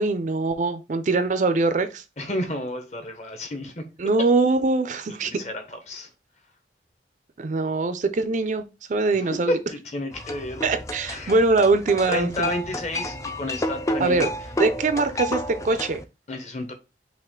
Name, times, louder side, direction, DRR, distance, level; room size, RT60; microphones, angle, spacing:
voice 1, 0.0-2.0 4.0-5.4 7.4-8.6 8.9-9.5 10.6-12.5 14.0-14.3 14.6-16.0, right 3 dB, 45° right, 0.4 m, -22 dB
voice 2, 2.2-3.8 5.1-6.1 9.1-10.6 11.1-11.3 12.1-14.3 16.3-16.7, left 1 dB, 40° left, 0.9 m, -31 dB
sound 1, 10.1-16.0, left 1 dB, 20° left, 0.4 m, -31 dB
5.6 x 2.4 x 3.7 m
head